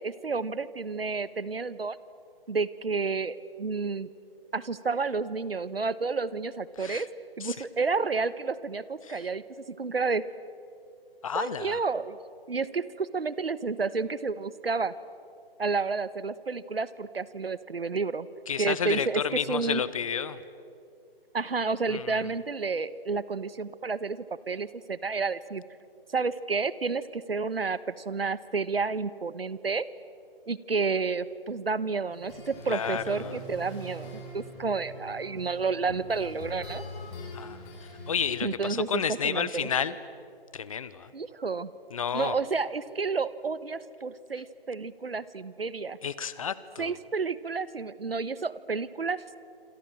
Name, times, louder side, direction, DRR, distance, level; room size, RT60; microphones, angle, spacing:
voice 1, 0.0-2.0 2.5-4.1 4.5-7.1 7.4-9.4 9.8-10.2 11.3-12.2 12.5-14.9 15.6-18.3 18.6-19.8 21.3-25.6 26.1-29.9 30.5-36.8 38.4-39.7 41.1-41.7 42.1-46.0 46.8-49.4, right 4 dB, 75° right, 17 dB, 1.3 m, -30 dB
voice 2, 11.2-11.8 18.5-20.4 21.9-22.3 32.7-33.4 37.3-37.7 38.1-40.0 40.5-41.1 41.9-42.4 46.0-47.0, left 7 dB, 35° left, 16 dB, 1.0 m, -31 dB
sound 1, 32.1-38.2, equal, 20° left, 5.7 m, -43 dB
27.0 x 27.0 x 7.6 m, 2.5 s
figure-of-eight pair, 145°, 30 cm